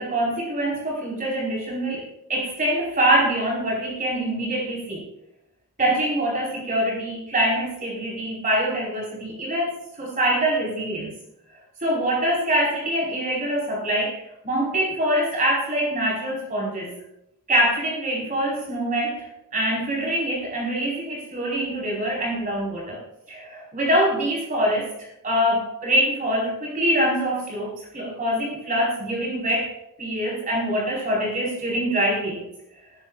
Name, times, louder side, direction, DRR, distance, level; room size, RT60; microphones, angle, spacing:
voice 1, 0.0-2.0 2.3-5.0 5.8-9.7 10.0-11.1 11.8-16.9 17.5-23.0 23.3-24.9 25.2-29.7 30.0-32.4, right 1 dB, 40° right, -5 dB, 4.7 m, -24 dB
19.5 x 14.0 x 2.5 m, 0.86 s
head